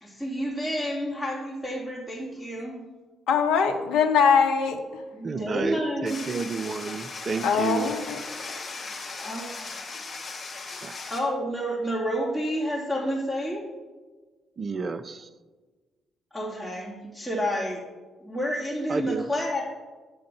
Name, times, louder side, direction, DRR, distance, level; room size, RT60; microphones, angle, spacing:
voice 1, 0.0-2.8 5.1-6.4 9.2-9.9 10.7-13.7 16.3-17.8 18.2-19.6, equal, 5° left, -8 dB, 2.7 m, -30 dB
voice 2, 3.3-4.8 7.4-8.2, left 6 dB, 70° left, 4 dB, 0.8 m, -22 dB
voice 3, 5.2-7.9 10.8-10.9 14.6-15.3 18.9-19.2, right 4 dB, 45° right, 11 dB, 0.5 m, -31 dB
sound 1, 6.1-11.2, left 4 dB, 40° left, 2.1 m, -38 dB
9.5 x 3.8 x 6.8 m, 1.3 s
hypercardioid pair, 40°, 0 cm